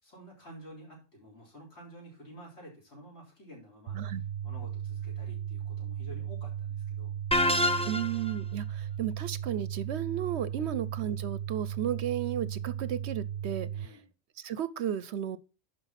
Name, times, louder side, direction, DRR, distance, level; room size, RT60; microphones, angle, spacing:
voice 1, 0.0-4.2 4.4-7.2 10.5-10.7 13.7-14.0, right 1 dB, 60° left, 4.4 m, -50 dB
sound 1, 3.9-13.9, right 10 dB, 90° right, 1.0 m, -36 dB
sound 2, 7.3-8.3, left 1 dB, 5° left, 0.6 m, -26 dB
voice 2, 7.8-14.0 14.4-15.4, right 10 dB, 65° right, 0.9 m, -34 dB
11.5 x 4.8 x 5.8 m
omnidirectional pair, 1.3 m